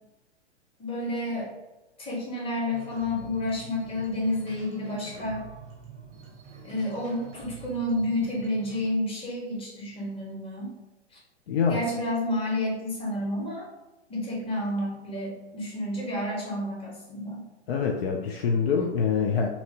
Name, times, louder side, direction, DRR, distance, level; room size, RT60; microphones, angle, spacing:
voice 1, 0.8-1.5 2.0-5.4 6.6-10.7 11.1-11.2 11.7-13.7 14.1-17.4, left 1 dB, 15° left, -4 dB, 1.0 m, -30 dB
sound 1, 2.7-8.9, right 5 dB, 20° right, 0.7 m, -45 dB
voice 2, 11.5-11.8 17.7-19.5, left 6 dB, 60° left, 1 dB, 0.5 m, -25 dB
2.8 x 2.8 x 2.8 m, 1.0 s
hypercardioid pair, 110°, 35 cm